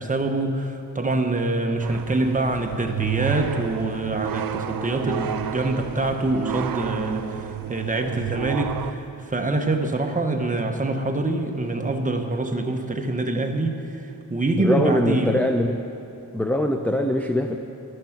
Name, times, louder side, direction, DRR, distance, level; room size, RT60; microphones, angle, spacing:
voice 1, 0.0-15.4, right 2 dB, 25° right, 4 dB, 0.8 m, -25 dB
sound 1, 1.8-8.9, right 11 dB, 80° right, 0.5 m, -31 dB
voice 2, 14.6-15.8 16.3-17.6, left 1 dB, 5° left, 5 dB, 0.4 m, -22 dB
12.0 x 10.0 x 5.8 m, 2.7 s
wide cardioid pair, 145°, 34 cm